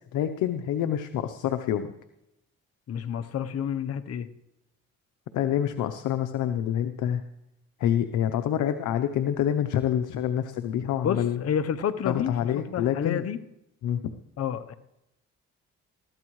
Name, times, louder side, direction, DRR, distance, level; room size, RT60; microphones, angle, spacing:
voice 1, 0.1-1.9 5.3-7.2 7.8-11.4 12.0-13.2 13.8-14.0, left 10 dB, 85° left, 9 dB, 0.8 m, -27 dB
voice 2, 2.9-4.3 11.0-12.3 12.7-13.4 14.4-14.7, left 8 dB, 55° left, 10 dB, 0.9 m, -29 dB
21.0 x 15.0 x 3.2 m, 0.87 s
cardioid pair, 90°, 30 cm